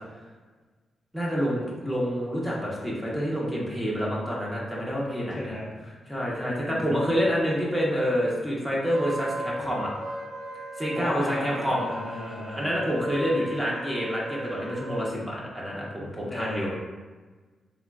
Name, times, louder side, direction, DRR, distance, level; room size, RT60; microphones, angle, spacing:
voice 1, 1.1-5.6 6.1-9.9 10.8-11.9 12.5-16.7, equal, 5° right, -5 dB, 1.0 m, -28 dB
voice 2, 5.3-5.7 6.4-7.2 11.0-12.7 16.3-16.7, left 1 dB, 30° left, -5 dB, 0.6 m, -35 dB
Wind instrument woodwind instrument, 8.8-15.0, right 1 dB, 80° right, 0.8 m, -37 dB
3.5 x 3.0 x 2.4 m, 1.3 s
cardioid pair, 85°, 0 cm